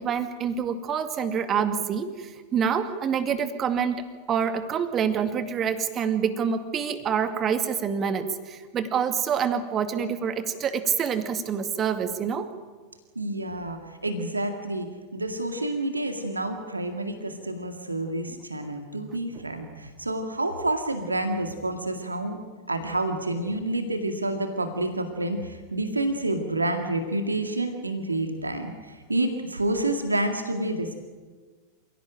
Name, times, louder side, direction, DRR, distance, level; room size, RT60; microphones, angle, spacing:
voice 1, 0.0-4.0 4.3-12.5, right 7 dB, 30° right, 8 dB, 2.3 m, -26 dB
voice 2, 13.2-22.4 22.7-31.0, right 1 dB, 80° right, 5 dB, 2.1 m, -29 dB
27.5 x 17.5 x 9.2 m, 1.4 s
figure-of-eight pair, 90°, 0 cm